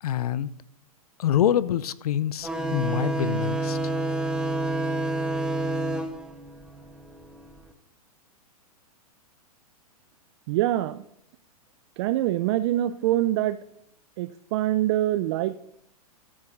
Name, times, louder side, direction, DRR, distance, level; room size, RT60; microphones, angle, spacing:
voice 1, 0.0-0.5 1.2-3.8, left 10 dB, 75° left, 0.7 m, -25 dB
sound 1, 2.4-7.6, right 2 dB, 5° right, 1.3 m, -29 dB
voice 2, 10.5-11.0 12.0-13.6 14.2-15.6, right 14 dB, 45° right, 0.5 m, -24 dB
13.5 x 8.6 x 4.0 m
hypercardioid pair, 130°, 19 cm